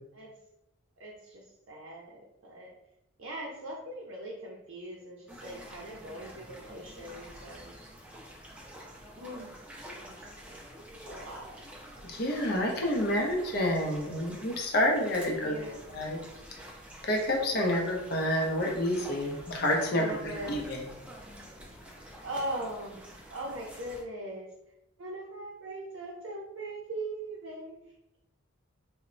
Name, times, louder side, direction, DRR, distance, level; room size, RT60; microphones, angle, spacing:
voice 1, 1.0-2.7 3.2-7.7 9.1-9.5 10.0-10.3 11.1-11.6 15.4-15.8 19.9-20.7 22.2-24.5 25.0-27.7, right 1 dB, 75° right, -3 dB, 0.5 m, -40 dB
sound 1, 5.3-24.0, equal, 5° right, 0.3 m, -48 dB
voice 2, 12.0-15.6 15.9-16.2 17.1-20.8, left 1 dB, 50° left, 0 dB, 0.5 m, -29 dB
2.1 x 2.0 x 3.7 m, 0.84 s
head